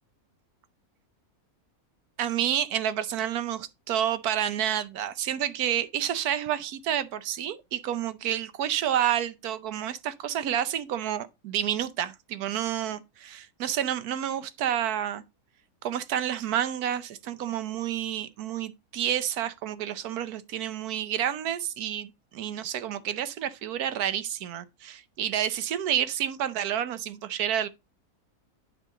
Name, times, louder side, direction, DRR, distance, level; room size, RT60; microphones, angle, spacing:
voice 1, 2.2-15.2 15.8-27.7, right 10 dB, 85° right, 1.2 m, -29 dB
9.2 x 6.0 x 3.7 m
omnidirectional pair, 1.6 m